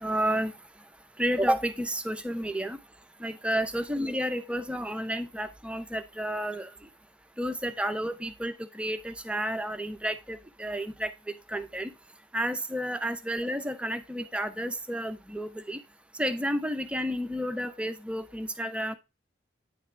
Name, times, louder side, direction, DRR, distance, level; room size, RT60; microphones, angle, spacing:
voice 1, 0.0-0.5 1.2-2.8 3.2-6.7 7.4-11.1 11.5-11.9 12.3-15.8 16.2-18.9, equal, 5° right, 9 dB, 0.5 m, -31 dB
9.2 x 3.6 x 4.3 m, 0.26 s
head